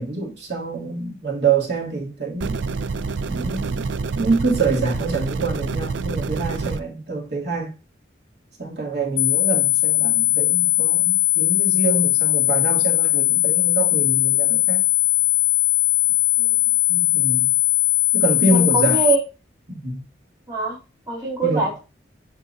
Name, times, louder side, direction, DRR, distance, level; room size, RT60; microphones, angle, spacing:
voice 1, 0.0-2.6 3.3-3.8 4.1-7.7 8.6-14.8 16.9-17.5 18.1-19.0 19.7-20.0 21.4-21.7, right 3 dB, 65° right, 2.8 m, -25 dB
sound 1, 2.4-6.8, right 4 dB, 85° right, 0.4 m, -27 dB
sound 2, 9.2-19.2, left 20 dB, 75° left, 0.5 m, -19 dB
voice 2, 18.5-19.2 20.5-20.8 21.1-21.8, right 4 dB, 20° right, 3.1 m, -23 dB
11.0 x 3.8 x 2.7 m
head